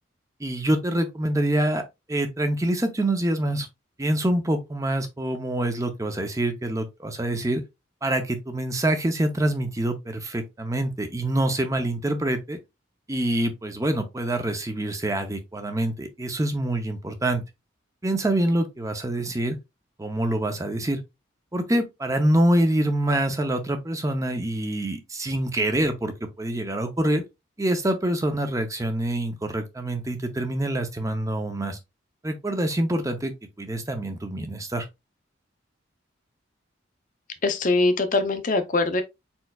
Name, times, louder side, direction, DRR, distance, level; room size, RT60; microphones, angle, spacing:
voice 1, 0.4-1.8 2.1-3.7 4.0-7.6 8.0-12.6 13.1-17.4 18.0-19.6 20.0-21.0 21.5-27.2 27.6-31.8 32.2-33.3 33.6-34.9, right 1 dB, 15° right, 0.5 m, -25 dB
voice 2, 37.4-39.0, left 3 dB, 40° left, 0.6 m, -22 dB
4.4 x 4.3 x 2.2 m
head